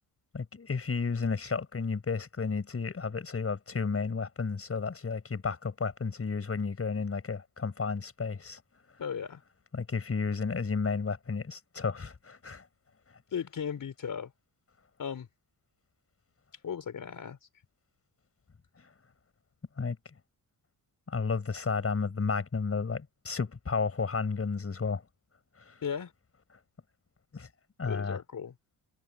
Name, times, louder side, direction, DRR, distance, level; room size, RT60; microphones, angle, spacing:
voice 1, 0.3-8.6 9.7-12.7 18.8-18.9 19.8-20.0 21.1-25.0 25.6-25.8 27.3-27.5 27.8-28.2, left 4 dB, 35° left, 7.1 m, -32 dB
voice 2, 9.0-9.4 13.3-14.3 15.0-15.3 16.6-17.5 25.8-26.1 27.9-28.5, left 7 dB, 55° left, 5.0 m, -36 dB
cardioid pair, 85°, 40 cm